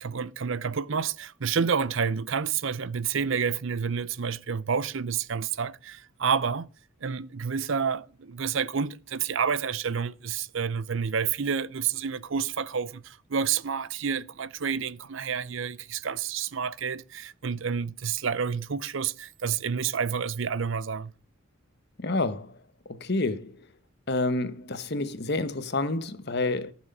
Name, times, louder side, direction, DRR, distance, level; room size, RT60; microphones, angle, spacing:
voice 1, 0.0-6.7 7.0-21.1, right 6 dB, 60° right, 0.6 m, -29 dB
voice 2, 22.0-22.5 22.9-23.5 24.1-26.7, left 2 dB, 50° left, 1.0 m, -28 dB
14.5 x 6.2 x 5.4 m
head